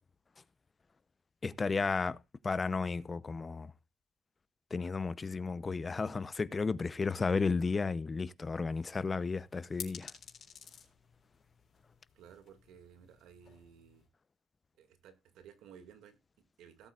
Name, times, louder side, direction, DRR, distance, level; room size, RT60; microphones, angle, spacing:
voice 1, 1.4-2.2 2.4-3.7 4.7-10.1, left 4 dB, 30° left, 0.7 m, -33 dB
sound 1, 8.9-14.1, left 7 dB, 60° left, 3.7 m, -52 dB
voice 2, 12.1-14.1 14.8-16.9, right 8 dB, 90° right, 2.1 m, -56 dB
17.5 x 8.1 x 2.4 m
cardioid pair, 90°, 0 cm